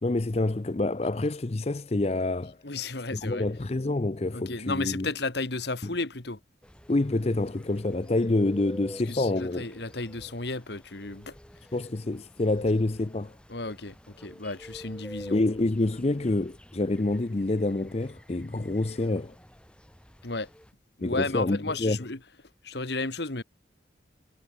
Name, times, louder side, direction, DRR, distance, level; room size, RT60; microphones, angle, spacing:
voice 1, 0.0-2.6 3.1-5.1 6.9-9.7 11.7-13.3 15.3-19.4 21.0-22.0, left 2 dB, 35° left, 0.6 m, -27 dB
voice 2, 2.6-3.4 4.3-6.4 9.1-11.3 13.5-15.4 20.2-20.5 21.0-22.2 22.6-23.4, left 3 dB, 60° left, 1.9 m, -33 dB
sound 1, 6.6-20.7, equal, 5° left, 4.4 m, -49 dB
head